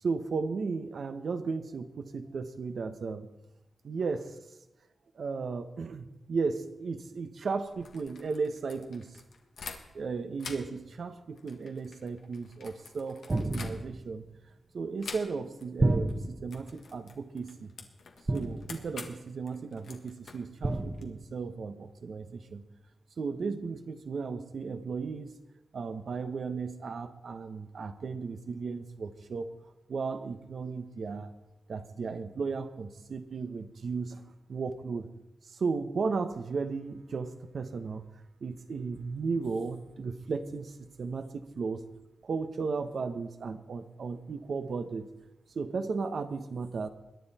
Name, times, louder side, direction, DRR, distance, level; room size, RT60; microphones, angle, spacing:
voice 1, 0.0-3.3 3.8-4.4 5.2-9.1 9.9-14.2 14.7-17.7 18.3-22.6 23.2-25.3 25.7-29.5 29.9-31.3 31.7-34.2 34.5-35.1 35.6-38.0 38.4-41.9 42.2-45.1 45.5-46.9, right 4 dB, 65° right, 9 dB, 1.2 m, -35 dB
sound 1, 7.6-10.1 10.4-14.2 15.0-15.7 15.9-16.2 16.5-21.1, left 5 dB, 80° left, 1.7 m, -47 dB
sound 2, 13.3-14.1 15.8-16.6 18.3-19.0 20.6-21.3, right 2 dB, 30° right, 1.2 m, -30 dB
22.0 x 10.0 x 4.3 m, 0.97 s
cardioid pair, 75°, 0 cm